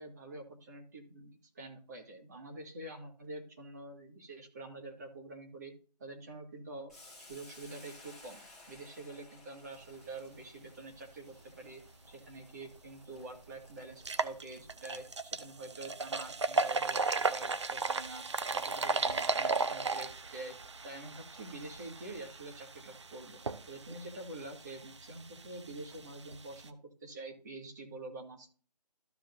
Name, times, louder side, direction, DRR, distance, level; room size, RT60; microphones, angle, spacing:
voice 1, 0.0-5.7 6.0-8.4 8.7-11.8 12.1-18.3 18.5-20.6 20.8-23.4 23.7-28.5, right 2 dB, 25° right, 2 dB, 1.9 m, -47 dB
Boiling, 6.9-14.7, left 2 dB, ahead, 1.8 m, -57 dB
sound 1, 12.7-12.8 13.2-13.3 13.9-26.7, right 4 dB, 45° right, 0.7 m, -36 dB
14.5 x 5.0 x 2.6 m, 0.40 s
figure-of-eight pair, 170°, 21 cm